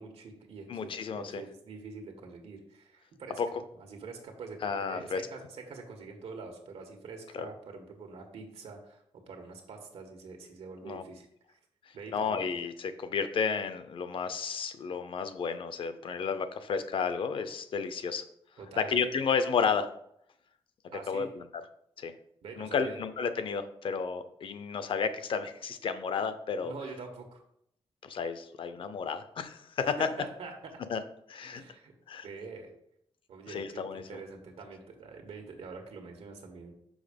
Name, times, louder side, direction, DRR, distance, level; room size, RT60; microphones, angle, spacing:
voice 1, 0.0-11.6 11.9-12.4 18.6-19.0 20.9-21.3 22.4-23.0 26.6-27.4 29.8-30.7 31.5-31.9 32.2-32.7 33.3-36.7, right 4 dB, 85° right, 3 dB, 1.4 m, -45 dB
voice 2, 0.7-1.4 3.4-3.5 4.6-5.2 7.3-7.4 10.9-11.0 12.1-18.2 18.8-19.9 21.1-21.4 22.0-22.1 22.6-26.7 28.0-30.1 30.9-31.0 31.3-31.6 32.1-32.3 33.5-34.2, left 6 dB, 60° left, 11 dB, 0.7 m, -32 dB
6.3 x 5.4 x 5.2 m, 0.73 s
wide cardioid pair, 160°, 10 cm